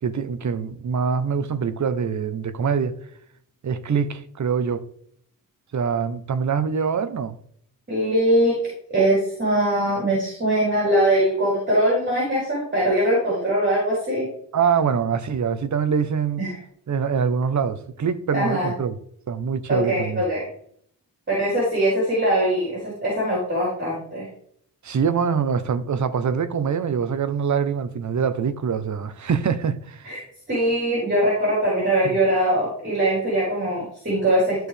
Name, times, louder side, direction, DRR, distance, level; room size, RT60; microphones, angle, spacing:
voice 1, 0.0-3.0 3.6-4.9 5.7-7.4 14.5-16.4 16.9-18.9 19.3-20.2 24.8-30.1 32.0-32.2, right 6 dB, 55° right, 0.8 m, -24 dB
voice 2, 7.9-8.6 8.9-14.3 16.4-16.5 18.3-18.7 19.7-20.5 21.3-24.3 30.0-30.2 30.5-34.7, right 1 dB, 30° right, 4.0 m, -22 dB
13.5 x 4.6 x 3.4 m
wide cardioid pair, 100°, 34 cm